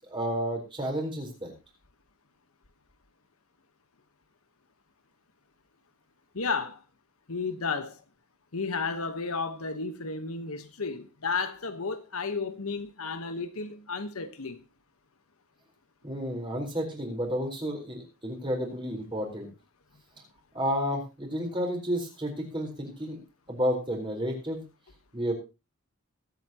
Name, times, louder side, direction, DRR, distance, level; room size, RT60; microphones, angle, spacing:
voice 1, 0.1-1.5 16.0-19.5 20.5-23.2 23.5-24.6 25.1-25.3, equal, 20° right, 4.2 m, -31 dB
voice 2, 6.3-6.8 7.3-8.0 8.5-14.6, left 4 dB, 75° left, 1.2 m, -33 dB
21.5 x 8.3 x 2.9 m
head